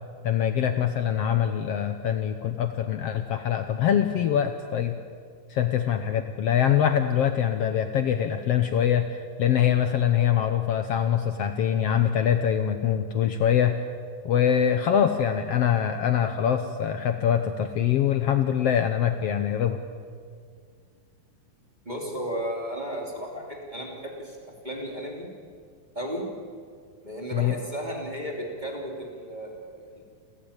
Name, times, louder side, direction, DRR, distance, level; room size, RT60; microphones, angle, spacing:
voice 1, 0.2-5.0 5.5-9.1 9.4-13.8 14.2-19.8 27.3-27.5, left 9 dB, 75° left, 8 dB, 1.5 m, -24 dB
voice 2, 21.8-24.4 24.6-25.3 25.9-26.2 27.0-30.0, equal, 15° right, -1 dB, 2.9 m, -34 dB
29.5 x 14.5 x 8.8 m, 2.1 s
omnidirectional pair, 3.8 m